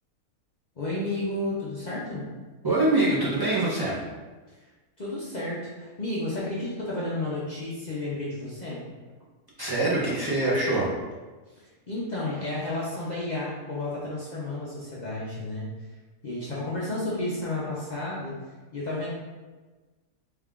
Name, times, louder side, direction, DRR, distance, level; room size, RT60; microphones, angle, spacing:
voice 1, 0.8-2.3 4.6-4.7 5.0-8.8 11.6-15.7 16.2-18.3 18.7-19.1, left 2 dB, 60° left, -7 dB, 0.4 m, -32 dB
voice 2, 2.6-4.0 9.6-10.9, right 2 dB, 25° right, -8 dB, 0.5 m, -24 dB
3.6 x 2.4 x 3.5 m, 1.3 s
omnidirectional pair, 1.6 m